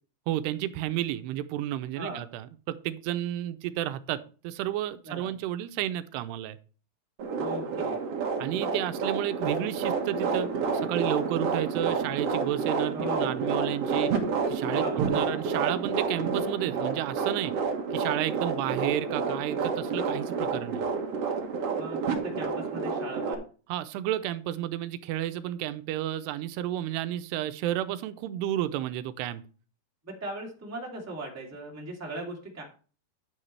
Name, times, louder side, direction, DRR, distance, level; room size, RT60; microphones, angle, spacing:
voice 1, 0.3-6.6 8.4-10.5 10.9-14.1 14.5-17.5 17.9-20.8 23.7-29.4, right 13 dB, 85° right, 12 dB, 2.7 m, -32 dB
sound 1, 7.2-23.3, right 5 dB, 65° right, 1.5 m, -29 dB
voice 2, 7.4-8.0 12.9-13.4 14.7-15.0 21.8-23.4 30.0-32.6, right 1 dB, 5° right, -2 dB, 1.5 m, -38 dB
10.5 x 8.6 x 3.3 m, 0.37 s
omnidirectional pair, 4.7 m